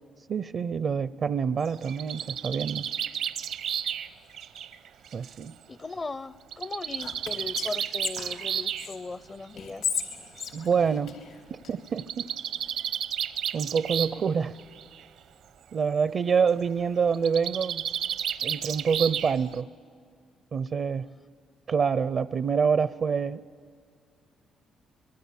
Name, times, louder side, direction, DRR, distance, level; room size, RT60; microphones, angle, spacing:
voice 1, 0.3-2.9 5.1-5.5 10.5-11.2 11.5-12.3 13.5-14.6 15.7-17.8 18.4-19.7 20.5-21.1 21.7-23.4, right 6 dB, 55° right, 15 dB, 0.5 m, -26 dB
Bird, 1.7-5.4 6.5-8.9 10.0-10.1 10.4-10.5 10.7-10.8 11.9-14.3 14.6-15.0 17.1-19.6, right 9 dB, 85° right, 1.0 m, -32 dB
voice 2, 5.7-9.9, left 3 dB, 30° left, 18 dB, 0.5 m, -38 dB
Whispering, 7.0-9.0 9.6-11.7, left 7 dB, 90° left, 3.9 m, -35 dB
26.0 x 22.0 x 8.4 m, 2.2 s
cardioid pair, 90°, 0 cm